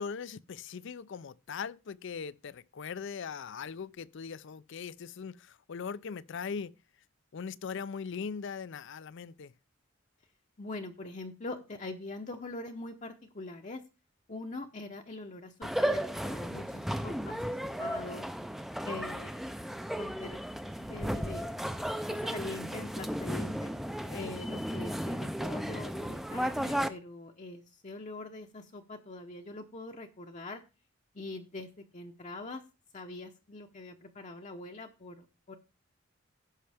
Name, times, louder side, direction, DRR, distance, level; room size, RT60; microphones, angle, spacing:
voice 1, 0.0-6.7 7.3-9.5 24.0-24.4, left 6 dB, 60° left, 0.5 m, -40 dB
voice 2, 10.6-13.8 14.3-18.3 18.8-19.5 20.0-20.4 20.8-21.5 22.1-23.7 24.1-30.6 31.1-32.6 32.9-35.6, left 2 dB, 35° left, 0.8 m, -43 dB
sound 1, 15.6-26.9, equal, ahead, 0.5 m, -34 dB
15.5 x 5.7 x 3.4 m
head